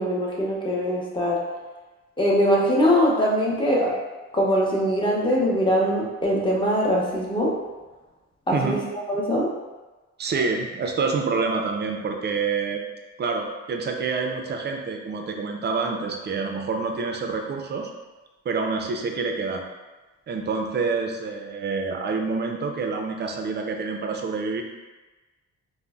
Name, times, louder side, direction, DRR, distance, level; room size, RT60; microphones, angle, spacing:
voice 1, 0.0-1.4 2.2-3.9 4.3-7.5 8.5-8.8 9.1-9.5, equal, 15° left, -4 dB, 0.7 m, -22 dB
voice 2, 10.2-12.8 13.2-17.9 18.5-19.7 20.3-24.6, right 4 dB, 35° right, 3 dB, 0.4 m, -27 dB
3.8 x 2.0 x 2.3 m, 1.2 s
cardioid pair, 90°, 30 cm